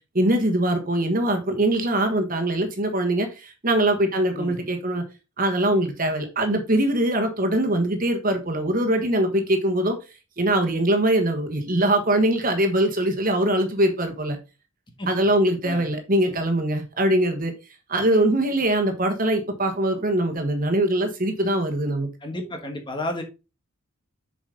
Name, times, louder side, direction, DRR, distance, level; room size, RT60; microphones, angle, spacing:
voice 1, 0.1-5.0 5.4-10.0 10.4-14.4 15.1-17.5 17.9-22.1, right 1 dB, 40° right, 5 dB, 1.4 m, -22 dB
voice 2, 22.2-23.2, left 1 dB, 20° left, 4 dB, 1.3 m, -31 dB
7.2 x 5.1 x 3.9 m, 0.29 s
head